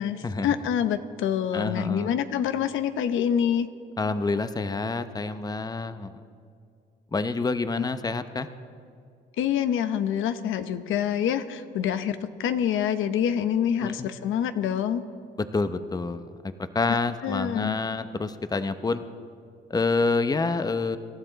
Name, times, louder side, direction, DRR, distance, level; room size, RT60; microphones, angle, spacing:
voice 1, 0.0-3.7 7.8-7.9 9.4-15.0 17.2-17.8, left 9 dB, 80° left, 11 dB, 0.8 m, -26 dB
voice 2, 1.5-2.1 4.0-6.1 7.1-8.5 13.8-14.1 15.4-19.0 19.7-21.0, left 3 dB, 20° left, 11 dB, 0.7 m, -27 dB
25.5 x 12.5 x 4.0 m, 2.3 s
cardioid pair, 90°, 20 cm